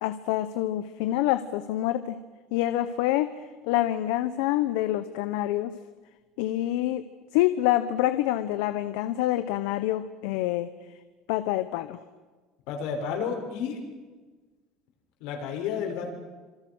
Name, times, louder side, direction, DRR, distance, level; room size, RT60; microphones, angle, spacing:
voice 1, 0.0-2.2 2.5-3.3 3.6-5.7 6.4-7.0 7.3-10.7 11.3-12.0, left 14 dB, 85° left, 12 dB, 1.1 m, -26 dB
voice 2, 12.7-13.8 15.2-16.1, left 6 dB, 70° left, 2 dB, 6.4 m, -31 dB
27.5 x 27.5 x 6.4 m, 1.3 s
cardioid pair, 170°, 0 cm